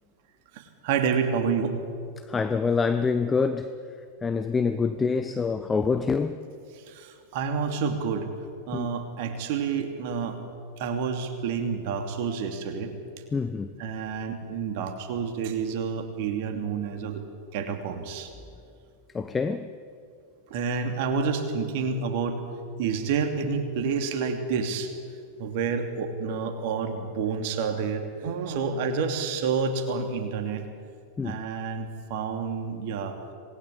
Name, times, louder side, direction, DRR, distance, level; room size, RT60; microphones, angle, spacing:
voice 1, 0.5-1.8 6.7-8.3 8.7-10.4 10.8-12.9 13.8-17.2 17.5-18.3 20.5-22.4 22.8-24.9 25.4-30.7 31.2-33.2, right 5 dB, 50° right, 2.8 m, -29 dB
voice 2, 2.3-3.7 4.2-6.4 8.7-8.9 13.3-13.7 19.1-19.7 31.2-31.4, left 5 dB, 15° left, 0.9 m, -26 dB
26.5 x 20.0 x 8.6 m
figure-of-eight pair, 90°, 0 cm